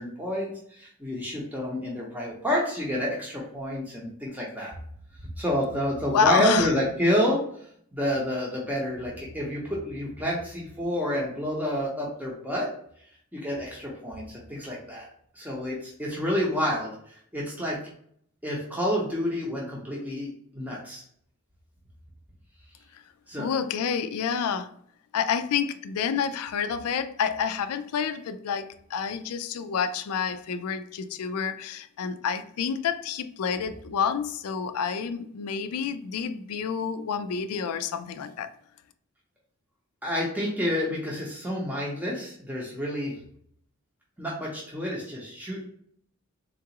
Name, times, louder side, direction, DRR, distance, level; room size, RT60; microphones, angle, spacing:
voice 1, 0.0-4.7 5.4-7.4 7.9-12.7 13.3-15.1 15.3-16.9 17.3-17.8 18.4-21.0 23.3-23.5 40.0-43.1 44.2-45.6, equal, 5° right, -5 dB, 0.6 m, -29 dB
voice 2, 6.1-6.7 22.9-23.0 23.4-24.7 25.1-38.5, left 7 dB, 85° left, 11 dB, 0.3 m, -28 dB
3.7 x 2.3 x 2.8 m, 0.64 s
head